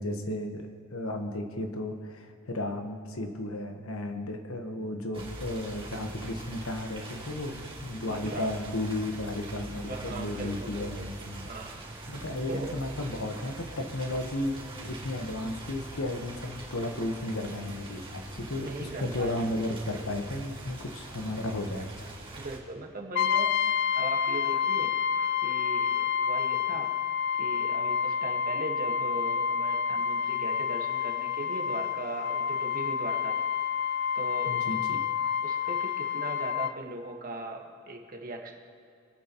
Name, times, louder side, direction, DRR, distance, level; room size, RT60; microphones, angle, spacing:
voice 1, 0.0-11.5 12.1-22.1 34.5-35.0, left 1 dB, 80° left, 5 dB, 1.2 m, -34 dB
sound 1, 5.1-22.6, right 2 dB, 25° right, 3.0 m, -43 dB
voice 2, 8.1-8.5 9.6-11.1 11.4-11.8 12.5-12.7 18.6-19.4 22.3-23.6 23.9-24.9 25.4-26.9 27.4-33.3 34.1-34.6 35.4-38.5, right 2 dB, 45° right, 1 dB, 1.5 m, -39 dB
Brass instrument, 23.1-36.8, left 7 dB, 55° left, 0.4 m, -29 dB
26.0 x 8.8 x 3.0 m, 2.5 s
head